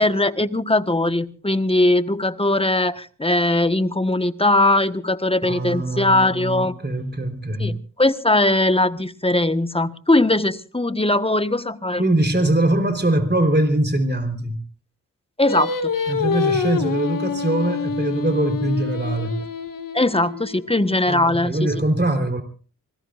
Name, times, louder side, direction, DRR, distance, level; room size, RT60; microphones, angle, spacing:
voice 1, 0.0-6.8 7.6-12.0 15.4-15.9 19.9-21.7, left 2 dB, 15° left, 11 dB, 1.3 m, -20 dB
voice 2, 5.4-7.8 12.0-14.6 16.1-19.5 21.1-22.4, right 1 dB, 30° right, 6 dB, 3.8 m, -22 dB
Singing, 15.5-20.7, left 5 dB, 80° left, 1.6 m, -26 dB
25.0 x 20.5 x 2.5 m, 0.39 s
cardioid pair, 40°, 32 cm